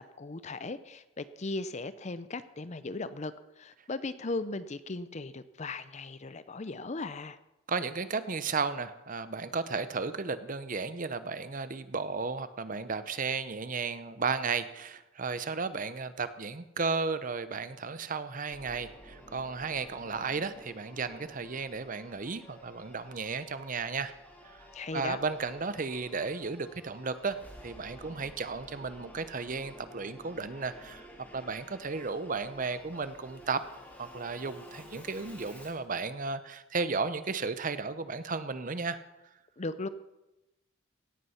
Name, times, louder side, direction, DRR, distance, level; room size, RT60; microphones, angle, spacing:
voice 1, 0.2-7.4 24.7-25.2 39.6-39.9, left 3 dB, 35° left, 14 dB, 0.5 m, -37 dB
voice 2, 7.7-24.1 24.4-24.7 24.9-31.1 31.3-33.6 34.0-39.0, right 4 dB, 40° right, 13 dB, 0.7 m, -34 dB
Singing / Musical instrument, 18.5-35.9, equal, 10° left, 2.0 m, -52 dB
17.5 x 8.4 x 5.7 m, 0.97 s
head